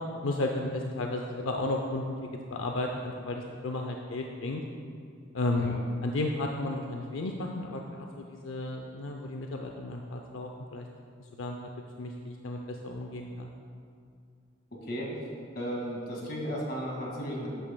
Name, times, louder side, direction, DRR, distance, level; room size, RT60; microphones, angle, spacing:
voice 1, 0.2-4.6 5.3-10.9 11.4-11.7 12.0-13.5, left 2 dB, 80° left, 2 dB, 0.5 m, -33 dB
voice 2, 15.5-17.5, equal, 50° left, -2 dB, 2.0 m, -34 dB
13.0 x 9.1 x 2.2 m, 2.3 s
head